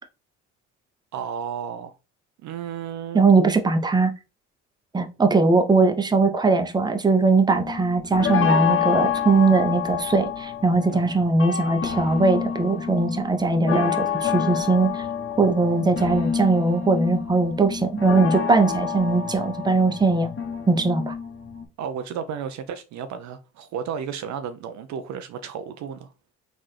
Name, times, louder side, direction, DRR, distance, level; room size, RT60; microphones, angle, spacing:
voice 1, 1.1-1.9 2.4-3.3 10.9-11.1 21.8-26.1, right 7 dB, 50° right, 0.5 m, -33 dB
voice 2, 3.1-4.1 4.9-14.9 15.4-20.3 20.7-21.1, right 3 dB, 10° right, 0.7 m, -20 dB
sound 1, 7.5-21.7, left 7 dB, 35° left, 1.5 m, -28 dB
3.8 x 2.6 x 3.2 m
hypercardioid pair, 60°, 37 cm